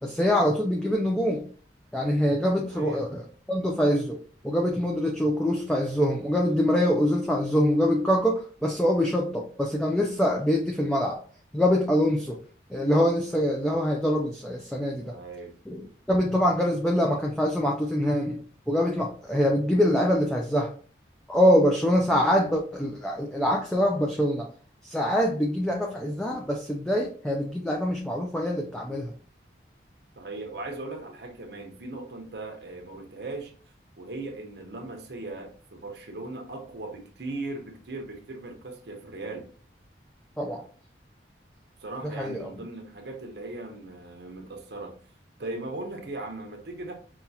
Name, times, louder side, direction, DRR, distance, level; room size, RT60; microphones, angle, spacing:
voice 1, 0.0-1.5 1.9-4.2 4.4-11.2 11.5-12.4 12.7-15.1 15.7-20.7 21.3-24.5 24.8-29.1 40.4-40.6 42.0-42.5, equal, 5° left, 0.4 m, -24 dB
voice 2, 2.7-3.0 15.1-15.5 30.2-33.5 34.0-39.5 41.8-45.0 45.4-46.9, right 2 dB, 65° right, 0.8 m, -38 dB
5.6 x 2.4 x 2.7 m
head